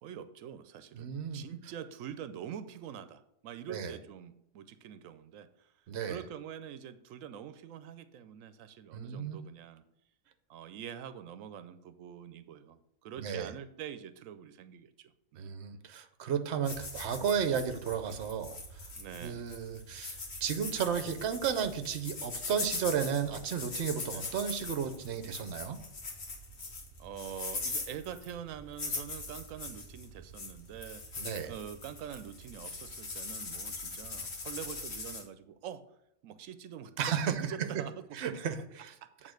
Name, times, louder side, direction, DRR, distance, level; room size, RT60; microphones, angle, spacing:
voice 1, 0.0-5.7 6.0-9.8 10.5-15.6 18.9-19.5 24.1-24.3 27.0-31.2 31.4-35.8 36.2-38.2 39.0-39.3, right 9 dB, 90° right, 12 dB, 1.0 m, -45 dB
voice 2, 0.9-1.4 3.7-3.9 5.9-6.2 8.9-9.4 13.2-13.5 15.4-18.8 19.2-25.8 31.2-31.5 37.0-37.7 38.2-38.9, right 7 dB, 60° right, 10 dB, 1.0 m, -33 dB
sound 1, 16.6-35.2, left 3 dB, 85° left, 1.9 m, -41 dB
8.4 x 3.7 x 6.4 m, 0.77 s
omnidirectional pair, 1.3 m